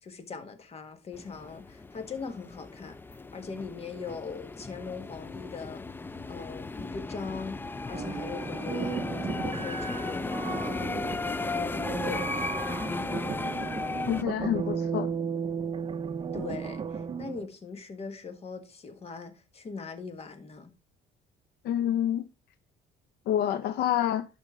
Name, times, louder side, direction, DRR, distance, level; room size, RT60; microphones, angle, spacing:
voice 1, 0.0-3.0 3.3-5.8 6.2-7.6 7.9-12.4 16.3-20.7, left 5 dB, 35° left, 1.6 m, -41 dB
sound 1, 1.1-14.2, left 3 dB, 10° left, 0.4 m, -35 dB
sound 2, 7.9-17.5, right 6 dB, 30° right, 0.7 m, -35 dB
voice 2, 14.1-15.1 21.6-22.2 23.3-24.3, left 11 dB, 75° left, 0.6 m, -27 dB
11.5 x 5.2 x 3.7 m
cardioid pair, 110°, 17 cm